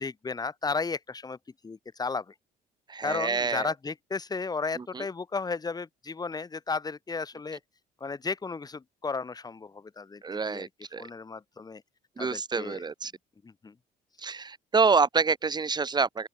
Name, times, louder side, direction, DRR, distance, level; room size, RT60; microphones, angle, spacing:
voice 1, 0.0-1.4 1.6-2.3 3.0-7.6 8.0-10.7 11.0-11.8 12.2-12.8 13.4-13.7, left 4 dB, 25° left, 2.4 m, -34 dB
voice 2, 2.9-3.7 4.8-5.0 10.2-11.1 12.2-13.1 14.2-16.3, right 4 dB, 25° right, 2.3 m, -27 dB
open air
cardioid pair, 110°, 17 cm